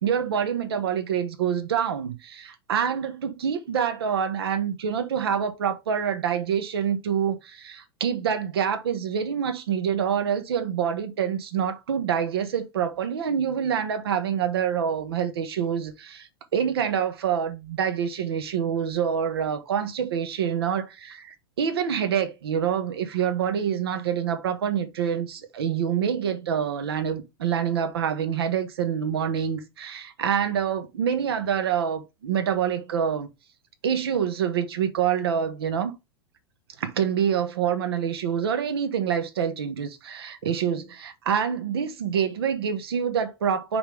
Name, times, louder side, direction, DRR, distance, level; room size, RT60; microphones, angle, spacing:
voice 1, 0.0-33.3 33.8-35.9 36.8-43.8, right 8 dB, 70° right, 1.5 m, -26 dB
5.8 x 5.4 x 3.4 m
figure-of-eight pair, 90°, 14 cm